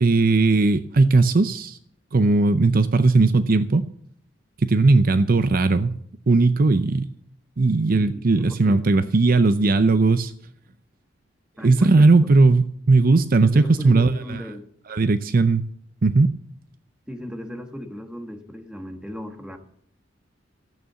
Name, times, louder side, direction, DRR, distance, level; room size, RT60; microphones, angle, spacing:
voice 1, 0.0-1.8 2.1-3.9 4.6-6.0 6.3-7.1 7.6-10.3 11.6-14.4 14.9-15.6 16.0-16.3, right 3 dB, 50° right, 12 dB, 0.6 m, -18 dB
voice 2, 8.0-9.1 11.6-12.3 13.4-14.7 17.1-19.6, equal, 5° right, 5 dB, 1.7 m, -37 dB
14.0 x 8.8 x 6.9 m, 0.65 s
head